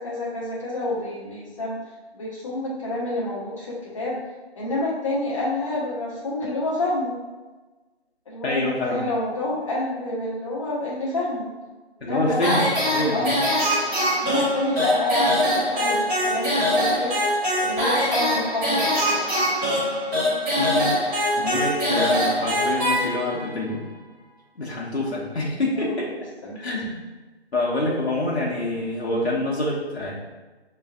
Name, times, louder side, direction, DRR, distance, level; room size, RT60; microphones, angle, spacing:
voice 1, 0.0-1.8 2.1-4.2 4.5-7.1 8.3-11.5 12.0-12.7 13.1-13.4 14.2-17.2 17.6-19.3 25.7-26.0 26.4-26.7, left 1 dB, 30° left, -5 dB, 1.2 m, -28 dB
voice 2, 8.4-9.0 12.0-12.6 12.9-13.4 20.6-21.1 21.4-23.8 24.6-26.1 26.5-27.0 27.5-30.1, left 1 dB, 70° left, -5 dB, 1.2 m, -26 dB
sound 1, 12.4-23.5, equal, 5° right, 1.1 m, -23 dB
6.7 x 3.2 x 2.5 m, 1.2 s
figure-of-eight pair, 155°, 33 cm